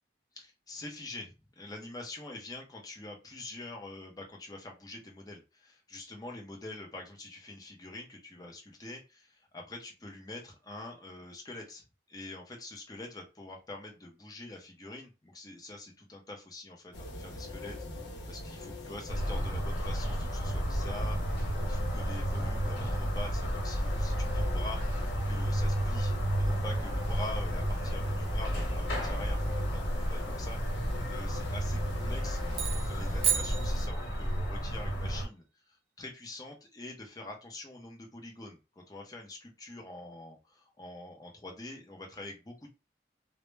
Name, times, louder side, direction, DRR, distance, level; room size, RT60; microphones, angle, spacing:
voice 1, 0.3-42.7, left 2 dB, 20° left, 0 dB, 0.6 m, -45 dB
sound 1, 16.9-33.9, left 2 dB, 80° left, 0.7 m, -42 dB
sound 2, 19.1-35.3, equal, 60° left, 1.0 m, -32 dB
sound 3, 32.5-34.4, right 8 dB, 35° right, 0.4 m, -33 dB
2.0 x 2.0 x 3.2 m, 0.28 s
head